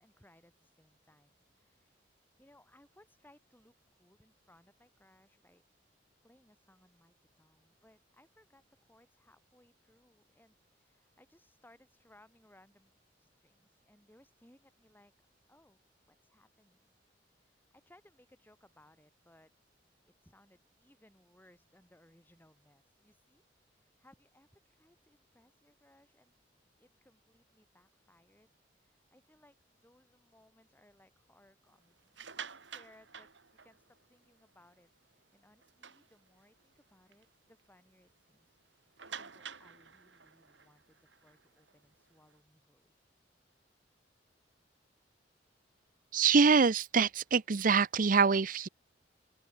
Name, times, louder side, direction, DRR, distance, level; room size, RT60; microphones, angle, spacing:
voice 1, 0.0-2.1 2.4-5.6 6.2-12.9 13.2-15.8 16.1-16.9 17.3-19.5 20.1-23.4 23.7-26.3 26.8-33.3 33.6-43.0, left 1 dB, 10° left, 6.4 m, -65 dB
sound 1, 32.0-34.1 34.6-34.8 35.1-35.2 35.6-36.6 37.1-37.2 37.6-37.7 39.0-42.3, right 7 dB, 85° right, 3.8 m, -49 dB
voice 2, 46.1-48.7, right 5 dB, 50° right, 0.6 m, -25 dB
open air
head